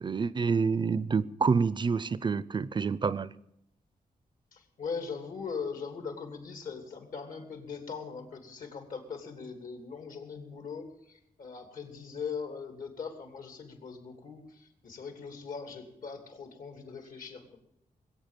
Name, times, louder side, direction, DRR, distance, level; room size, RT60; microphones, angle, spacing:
voice 1, 0.0-3.3, right 5 dB, 35° right, 17 dB, 0.5 m, -28 dB
voice 2, 4.5-17.6, left 5 dB, 75° left, 5 dB, 2.9 m, -40 dB
20.5 x 8.5 x 7.3 m, 0.78 s
wide cardioid pair, 135°, 14 cm